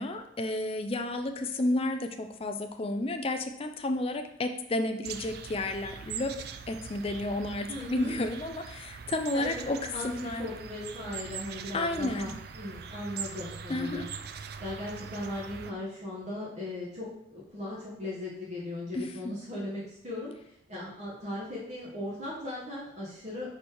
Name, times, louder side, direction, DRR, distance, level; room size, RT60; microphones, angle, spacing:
voice 1, 0.0-6.3 6.7-9.8 10.0-10.5 11.7-12.3 13.7-14.1 18.9-19.3, left 1 dB, 30° left, 6 dB, 0.4 m, -31 dB
sound 1, 5.0-15.7, right 7 dB, 50° right, 0.4 m, -42 dB
voice 2, 7.7-8.1 9.3-10.1 10.4-14.0 14.6-20.3 20.7-23.5, left 1 dB, 35° right, -7 dB, 1.3 m, -38 dB
4.9 x 4.3 x 4.6 m, 0.77 s
head